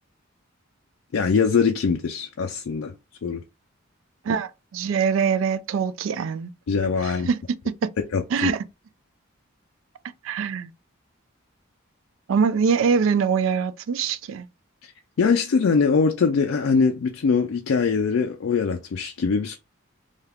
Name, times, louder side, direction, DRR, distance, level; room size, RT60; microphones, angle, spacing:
voice 1, 1.1-2.9 3.2-3.4 6.7-7.3 8.1-8.5 14.8-14.9 15.2-19.6, left 5 dB, 75° left, 0.4 m, -22 dB
voice 2, 4.3-6.5 7.0-7.4 7.8-7.9 8.3-8.6 10.2-10.7 12.3-14.5, right 6 dB, 70° right, 0.3 m, -23 dB
2.7 x 2.3 x 3.4 m
head